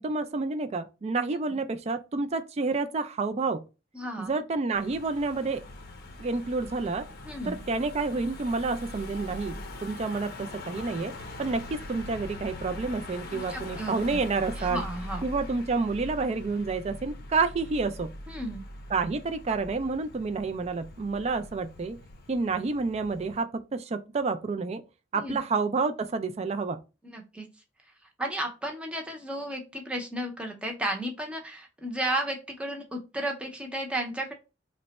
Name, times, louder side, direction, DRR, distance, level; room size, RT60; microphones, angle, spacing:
voice 1, 0.0-3.6 4.2-5.6 6.2-7.1 7.4-11.1 11.4-14.8 15.2-18.1 18.9-22.0 22.3-24.8 25.1-26.8, right 4 dB, 35° right, 0.3 m, -29 dB
voice 2, 3.9-4.4 7.2-7.6 13.3-14.2 14.6-15.2 18.3-18.6 25.1-25.4 27.0-27.5 28.2-34.3, right 1 dB, 5° right, 0.7 m, -33 dB
Car passing by / Engine, 4.7-23.4, left 1 dB, 55° left, 0.6 m, -42 dB
3.2 x 2.1 x 4.0 m
head